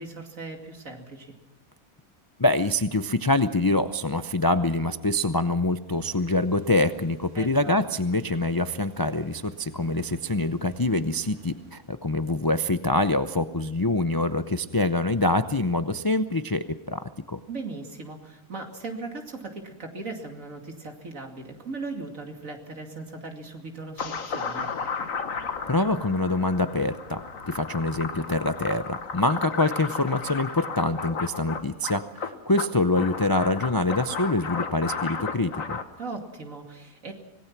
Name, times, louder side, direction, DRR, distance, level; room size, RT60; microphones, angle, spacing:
voice 1, 0.0-1.3 7.3-7.8 17.5-24.7 36.0-37.1, right 3 dB, 65° right, 3 dB, 2.9 m, -38 dB
voice 2, 2.4-17.4 25.7-27.2 27.5-35.8, left 2 dB, 35° left, 9 dB, 0.3 m, -25 dB
sound 1, 6.0-12.4, right 1 dB, 80° right, 4.6 m, -51 dB
sound 2, 24.0-35.8, left 5 dB, 65° left, 1.8 m, -34 dB
25.5 x 18.5 x 6.0 m, 0.96 s
omnidirectional pair, 1.5 m